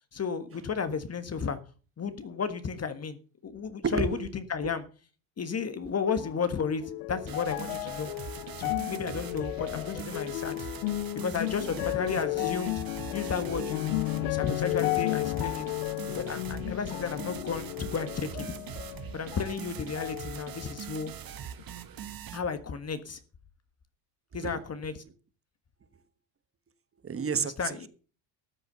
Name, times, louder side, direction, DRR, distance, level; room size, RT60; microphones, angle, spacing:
voice 1, 0.1-1.6 2.0-3.2 3.4-4.8 5.4-8.1 8.6-10.6 11.1-12.8 13.1-13.9 14.2-15.6 16.1-18.4 19.1-21.1 22.3-23.2 24.3-24.9 27.4-27.9, left 5 dB, 30° left, 1.5 m, -33 dB
voice 2, 3.8-4.2 4.6-4.7 24.4-24.5 27.0-27.9, right 5 dB, 25° right, 1.4 m, -30 dB
sound 1, 6.2-19.6 20.0-20.9 21.6-21.7, left 23 dB, 85° left, 0.5 m, -34 dB
sound 2, 7.3-22.4, right 9 dB, 45° right, 1.7 m, -42 dB
13.5 x 7.9 x 6.8 m
supercardioid pair, 100°, 49 cm